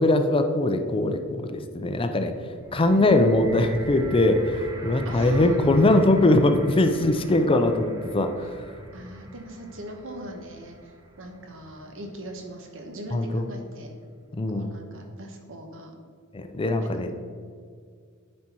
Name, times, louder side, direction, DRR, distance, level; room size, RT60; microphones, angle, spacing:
voice 1, 0.0-2.3 2.7-8.5 13.1-13.5 14.4-14.7 16.3-17.1, left 2 dB, 25° left, 7 dB, 0.5 m, -21 dB
sound 1, 2.5-12.7 13.5-13.6, right 1 dB, 15° right, 0.8 m, -41 dB
voice 2, 5.0-5.6 8.9-10.9 11.2-13.9 14.5-15.9 16.8-17.1, right 1 dB, 65° right, 3 dB, 1.2 m, -40 dB
9.6 x 4.3 x 4.5 m, 2.1 s
head